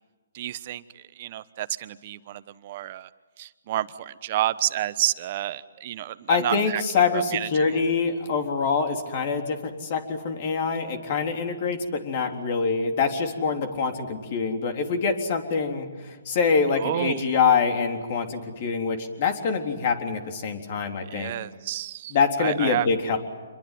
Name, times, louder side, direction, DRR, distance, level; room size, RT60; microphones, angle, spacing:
voice 1, 0.3-3.1 3.4-6.8 7.1-7.8 16.7-17.4 21.1-22.9, right 13 dB, 40° right, 15 dB, 1.1 m, -30 dB
voice 2, 6.3-21.3 22.1-23.2, left 5 dB, 40° left, 5 dB, 3.7 m, -25 dB
27.5 x 22.5 x 9.4 m, 1.3 s
hypercardioid pair, 145°, 0 cm